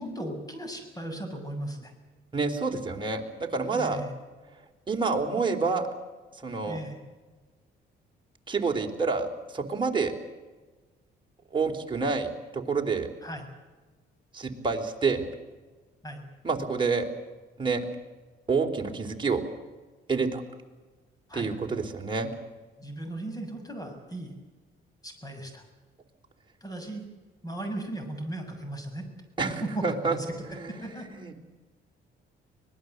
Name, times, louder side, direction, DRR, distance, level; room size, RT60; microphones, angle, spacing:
voice 1, 0.0-1.9 3.8-4.1 6.6-7.0 13.2-13.5 16.0-16.2 21.3-21.5 22.8-24.3 25.0-25.6 26.6-27.0 27.4-29.1 29.6-30.3 30.7-31.0, right 1 dB, 20° left, 6 dB, 6.8 m, -36 dB
voice 2, 2.3-4.0 4.9-5.9 6.4-6.8 8.5-10.1 11.5-13.1 14.3-15.3 16.4-17.1 17.6-17.8 18.5-19.4 20.1-20.4 21.3-22.3 29.4-30.2 30.5-31.4, right 4 dB, 25° right, 2 dB, 3.9 m, -28 dB
25.0 x 19.0 x 8.1 m, 1.3 s
cardioid pair, 90°, 20 cm